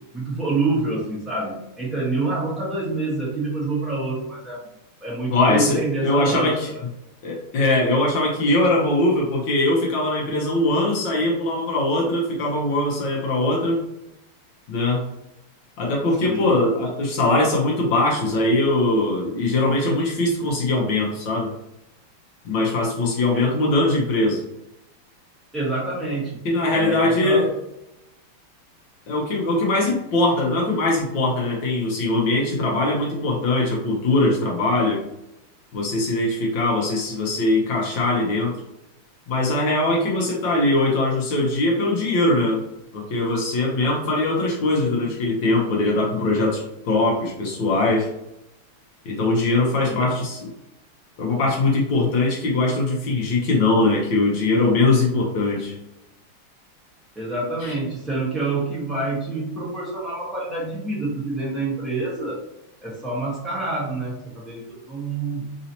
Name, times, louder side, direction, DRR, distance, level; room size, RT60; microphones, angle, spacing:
voice 1, 0.1-4.7 5.0-6.7 16.2-16.5 23.3-23.5 25.5-26.4 26.7-27.5 49.8-50.2 57.1-62.4 62.8-65.6, right 2 dB, ahead, -6 dB, 0.3 m, -27 dB
voice 2, 5.3-6.7 7.2-13.8 14.7-15.0 15.8-21.5 22.4-24.4 26.4-27.5 29.1-35.0 35.7-38.5 39.3-42.6 42.9-48.1 49.0-50.4 51.2-55.7 57.6-57.7, left 2 dB, 65° left, -2 dB, 1.3 m, -21 dB
4.0 x 2.7 x 2.8 m, 0.85 s
omnidirectional pair, 2.4 m